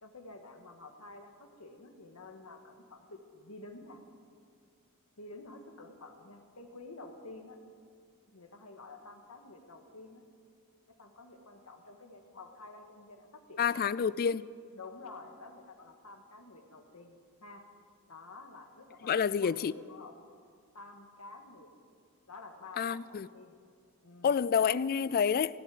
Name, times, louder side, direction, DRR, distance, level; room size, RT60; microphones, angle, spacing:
voice 1, 0.0-4.0 5.2-7.6 8.3-10.2 10.9-13.8 14.7-17.1 17.4-17.6 18.1-20.2 20.7-21.7 22.3-23.6 24.0-24.3, left 3 dB, 80° left, 1.8 m, -50 dB
voice 2, 13.6-14.5 19.0-19.7 22.8-23.3 24.2-25.6, left 7 dB, 40° left, 0.3 m, -28 dB
17.0 x 8.3 x 9.4 m
head